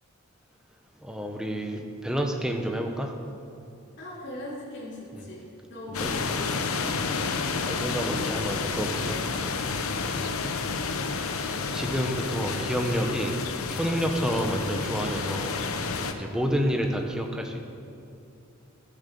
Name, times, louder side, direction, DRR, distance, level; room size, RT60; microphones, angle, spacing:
voice 1, 1.0-3.2 6.0-6.1 7.6-9.2 11.7-13.4 13.7-15.6 16.1-17.6, equal, 5° right, 3 dB, 1.0 m, -29 dB
voice 2, 4.0-7.4 9.9-10.5, left 1 dB, 55° left, -9 dB, 3.6 m, -41 dB
sound 1, 5.9-16.1, left 4 dB, 85° left, 0.9 m, -30 dB
14.0 x 8.1 x 6.9 m, 2.7 s
head